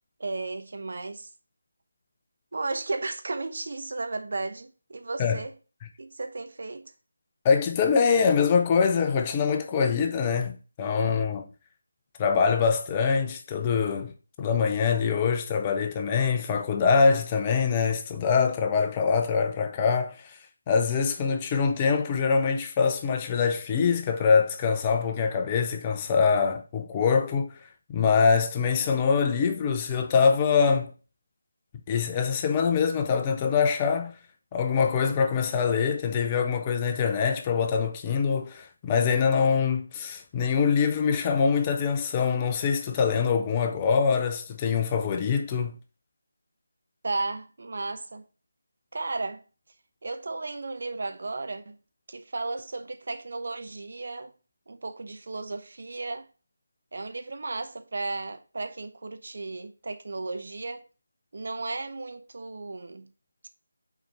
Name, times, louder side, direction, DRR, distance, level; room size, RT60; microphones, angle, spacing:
voice 1, 0.2-1.3 2.5-5.5 6.0-6.8 47.0-48.2 48.9-49.4 50.0-51.8 52.1-54.3 54.7-56.3 56.9-60.8 61.3-63.1, right 3 dB, 55° right, 0.8 m, -34 dB
voice 2, 7.4-11.5 12.2-14.1 14.4-20.4 20.7-30.9 31.9-34.2 34.5-45.7, left 5 dB, 20° left, 0.5 m, -24 dB
6.0 x 4.2 x 4.2 m
figure-of-eight pair, 160°, 0 cm